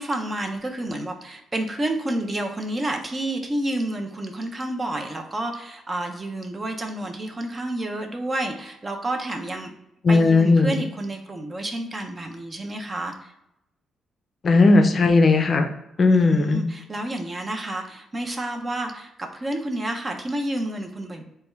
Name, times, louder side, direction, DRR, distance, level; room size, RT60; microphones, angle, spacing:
voice 1, 0.0-9.7 10.1-13.3 16.1-21.2, right 1 dB, 25° right, 3 dB, 0.4 m, -30 dB
voice 2, 10.0-10.8 14.4-15.7 16.0-16.6, left 3 dB, 45° left, 6 dB, 0.4 m, -17 dB
3.3 x 2.2 x 3.0 m, 0.86 s
cardioid pair, 90°, 0 cm